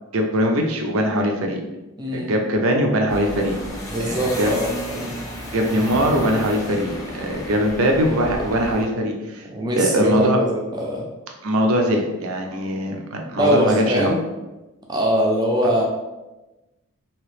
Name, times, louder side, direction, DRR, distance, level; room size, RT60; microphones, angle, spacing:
voice 1, 0.1-1.6 2.1-3.6 4.4-4.5 5.5-9.4 9.7-10.4 11.4-14.1, equal, 70° right, 2 dB, 0.6 m, -21 dB
voice 2, 2.0-2.3 3.9-5.2 9.5-11.1 13.3-14.2 14.9-15.8, equal, 20° right, -1 dB, 0.5 m, -22 dB
sound 1, 3.1-8.8, equal, 15° left, 0.8 m, -33 dB
3.0 x 2.8 x 3.2 m, 1.1 s
head